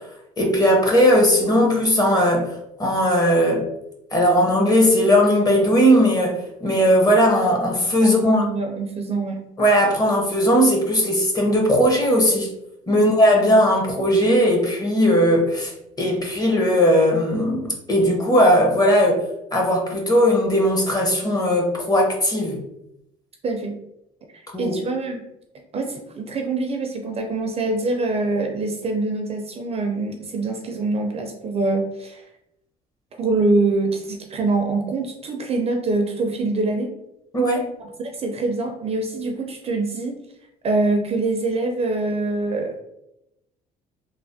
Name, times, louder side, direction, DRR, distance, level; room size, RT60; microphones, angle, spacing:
voice 1, 0.4-2.5 2.8-3.7 4.1-8.4 9.6-12.5 12.9-15.7 16.0-19.2 19.5-22.6 24.5-24.7 37.3-37.7, equal, 20° left, 0 dB, 0.7 m, -18 dB
voice 2, 8.0-9.4 12.9-13.1 23.4-23.8 24.3-25.2 25.7-32.2 33.2-36.9 38.0-40.1 40.6-42.8, right 3 dB, 35° right, 3 dB, 0.4 m, -24 dB
3.2 x 2.0 x 2.6 m, 0.84 s
cardioid pair, 110°, 17 cm